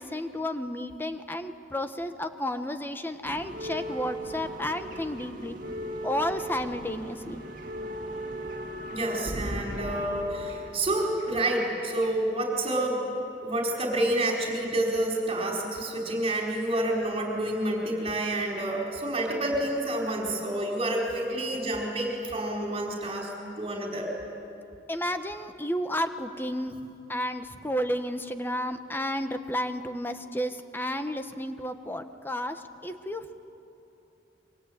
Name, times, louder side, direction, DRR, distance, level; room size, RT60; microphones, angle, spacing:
voice 1, 0.0-5.5 6.0-7.4 24.9-26.8 27.1-33.3, left 1 dB, 10° left, 8 dB, 1.2 m, -32 dB
sound 1, 3.2-12.7 13.6-14.7 15.0-15.2 16.1-16.2, right 1 dB, 50° right, 2.1 m, -38 dB
voice 2, 8.9-13.0 13.4-23.3 23.6-24.1, right 1 dB, 30° right, 0 dB, 4.6 m, -28 dB
27.5 x 24.0 x 8.8 m, 2.8 s
head